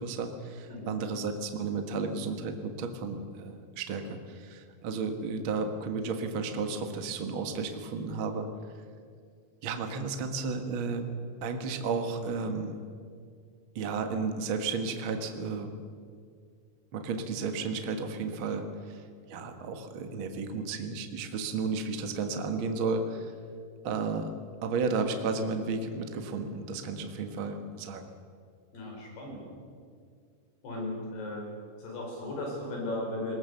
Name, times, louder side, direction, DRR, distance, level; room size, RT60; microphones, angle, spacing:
voice 1, 0.0-8.5 9.6-11.0 11.4-12.8 13.7-15.8 16.9-19.0 19.3-23.3 23.8-24.3 24.6-28.1, right 4 dB, 60° right, 6 dB, 1.3 m, -33 dB
voice 2, 28.7-29.4 30.6-31.4 31.8-33.4, left 1 dB, 75° left, -1 dB, 7.1 m, -36 dB
21.0 x 19.0 x 6.9 m, 2.1 s
omnidirectional pair, 4.6 m